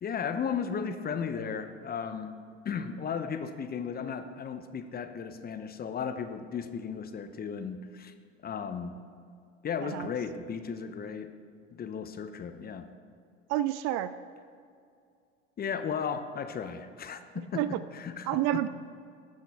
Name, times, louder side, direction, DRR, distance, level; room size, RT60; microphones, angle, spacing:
voice 1, 0.0-2.3 2.6-8.1 8.4-8.9 9.6-11.3 11.7-12.9 15.6-17.6 17.9-18.3, left 6 dB, 25° left, 9 dB, 0.7 m, -35 dB
voice 2, 13.5-14.1 17.5-17.8 18.3-18.7, right 14 dB, 50° right, 14 dB, 0.4 m, -29 dB
13.5 x 7.4 x 3.6 m, 2.3 s
hypercardioid pair, 75°, 35 cm